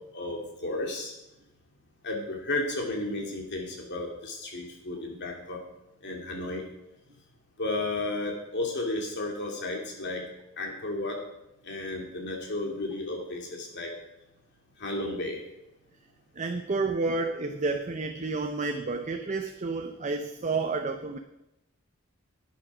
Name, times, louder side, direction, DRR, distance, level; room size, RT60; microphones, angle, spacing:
voice 1, 0.1-1.1 2.0-5.6 6.0-6.6 7.6-10.2 10.6-11.2 11.6-13.9 14.8-15.4, left 2 dB, 60° left, 0 dB, 2.6 m, -33 dB
voice 2, 16.4-21.2, right 3 dB, 35° right, 5 dB, 0.6 m, -30 dB
11.0 x 9.3 x 4.9 m, 0.91 s
head